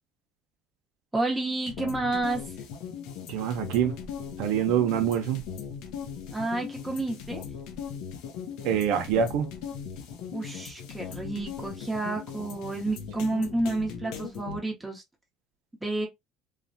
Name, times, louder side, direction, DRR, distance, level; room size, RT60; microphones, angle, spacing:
voice 1, 1.1-2.5 6.3-7.4 10.3-15.0 15.8-16.1, right 2 dB, 5° right, 0.8 m, -30 dB
sound 1, 1.7-14.6, left 7 dB, 80° left, 0.6 m, -39 dB
voice 2, 3.3-3.9 4.4-5.4 8.6-9.5, right 9 dB, 80° right, 0.5 m, -25 dB
3.2 x 2.1 x 2.5 m
cardioid pair, 140°, 0 cm